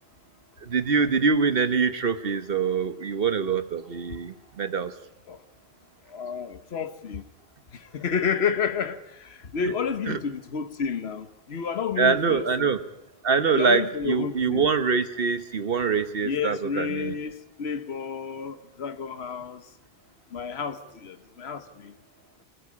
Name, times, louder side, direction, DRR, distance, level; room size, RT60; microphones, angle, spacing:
voice 1, 0.6-4.9 10.1-10.2 12.0-12.8 13.2-17.1, right 5 dB, 65° right, 1.3 m, -24 dB
voice 2, 6.1-7.2 7.7-12.8 13.5-14.7 16.2-19.6 20.3-21.9, left 6 dB, 80° left, 1.4 m, -30 dB
25.0 x 15.5 x 8.5 m
omnidirectional pair, 1.1 m